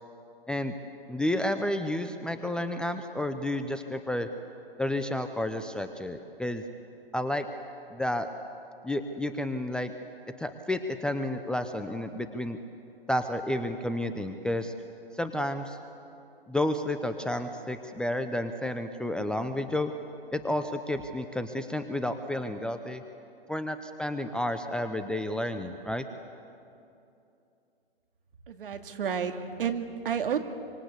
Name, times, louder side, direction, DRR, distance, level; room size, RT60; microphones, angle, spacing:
voice 1, 1.1-4.3 4.8-6.6 7.1-7.5 7.9-8.3 8.8-9.9 10.4-12.6 13.1-14.7 15.1-15.8 16.5-19.9 20.3-23.0 23.5-26.0, left 1 dB, 5° left, 8 dB, 0.6 m, -31 dB
voice 2, 28.5-30.4, right 7 dB, 60° right, 7 dB, 2.4 m, -31 dB
25.0 x 25.0 x 8.3 m, 2.7 s
figure-of-eight pair, 125°, 30 cm